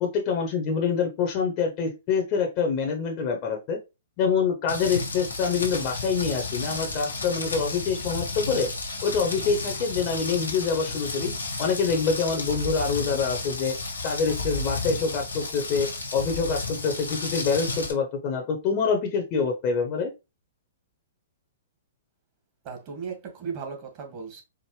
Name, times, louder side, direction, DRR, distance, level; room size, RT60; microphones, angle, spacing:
voice 1, 0.0-3.8 4.2-8.7 9.0-11.3 11.6-13.7 14.0-20.1, left 5 dB, 40° left, 1.0 m, -26 dB
Rain, 4.7-17.9, left 3 dB, 85° left, 1.3 m, -32 dB
voice 2, 22.6-24.4, right 6 dB, 40° right, 1.7 m, -36 dB
5.0 x 2.5 x 3.2 m
hypercardioid pair, 115°, 0 cm